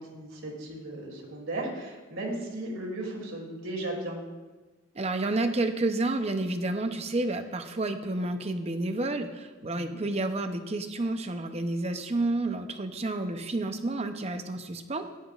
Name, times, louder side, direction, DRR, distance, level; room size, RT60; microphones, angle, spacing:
voice 1, 0.0-4.2 9.6-10.0, right 1 dB, 80° right, -1 dB, 2.8 m, -36 dB
voice 2, 4.9-15.1, right 2 dB, 30° right, 7 dB, 0.7 m, -30 dB
15.5 x 10.5 x 2.5 m, 1.2 s
head